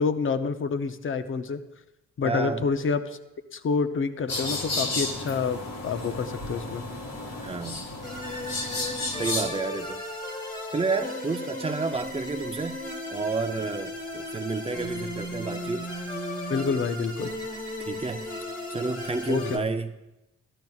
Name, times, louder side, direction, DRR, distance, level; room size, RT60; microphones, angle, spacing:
voice 1, 0.0-1.6 2.2-3.2 3.5-6.9 16.5-17.3 19.3-19.7, left 5 dB, 45° left, 10 dB, 0.6 m, -28 dB
voice 2, 2.2-2.6 7.4-7.8 9.2-10.0 10.7-12.8 13.1-15.9 17.8-18.2 18.7-19.9, right 4 dB, 20° right, 7 dB, 0.5 m, -30 dB
sound 1, 4.3-9.5, left 2 dB, 65° left, 1.8 m, -32 dB
sound 2, 8.0-19.6, left 1 dB, 30° left, 1.3 m, -35 dB
13.0 x 12.0 x 2.4 m, 0.95 s
wide cardioid pair, 130°, 29 cm